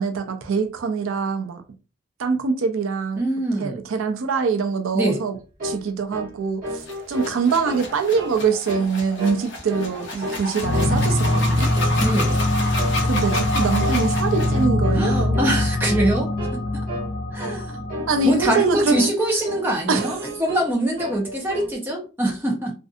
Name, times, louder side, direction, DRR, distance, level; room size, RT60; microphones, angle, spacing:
voice 1, 0.0-1.6 2.2-3.2 3.6-5.4 5.6-11.7 13.0-15.4 18.1-18.9 19.9-20.3, right 4 dB, 80° right, 0.5 m, -24 dB
voice 2, 3.2-3.8 4.9-5.2 12.0-12.3 14.9-16.3 17.3-17.8 18.2-22.7, right 1 dB, 10° right, 0.6 m, -23 dB
sound 1, 5.6-5.8 6.1-6.3 6.6-7.8 8.1-8.4 8.7-8.9 9.2-9.4 9.7-10.5 10.7-11.5 11.7-12.0 12.3-12.5 12.8-13.0 13.3-13.5 13.8-14.0 14.3-14.5 14.8-15.0 15.3-15.6 15.9-16.0 16.4-16.6 16.9-17.1 17.4-17.6 17.9-18.6 18.9-19.7 19.9-20.7 21.0-21.7, equal, 40° right, 1.3 m, -32 dB
sound 2, 6.8-14.6, left 1 dB, 60° left, 0.6 m, -31 dB
sound 3, 10.6-19.0, left 1 dB, 85° left, 1.0 m, -23 dB
2.5 x 2.5 x 2.4 m
head